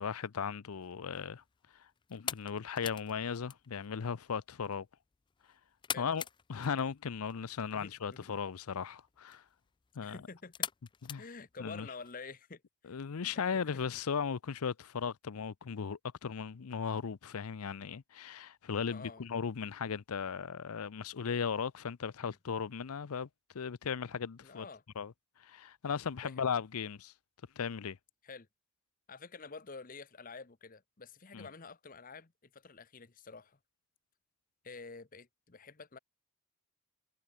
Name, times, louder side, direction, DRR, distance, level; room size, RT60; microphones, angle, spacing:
voice 1, 0.0-1.4 2.1-4.9 6.0-6.2 6.5-9.4 10.0-10.2 11.1-11.2 11.6-11.9 12.9-23.3 23.5-24.7 25.0-25.1 25.4-27.1 27.6-28.0 31.3-31.5, left 6 dB, 80° left, 0.6 m, -37 dB
sound 1, 0.7-12.1, left 8 dB, 20° left, 0.3 m, -46 dB
voice 2, 7.7-8.2 10.0-10.7 11.2-13.0 13.3-13.6 18.9-19.3 22.2-22.4 24.4-24.8 26.2-26.5 28.2-28.5 29.1-33.6 34.6-36.0, left 4 dB, 40° left, 0.9 m, -49 dB
head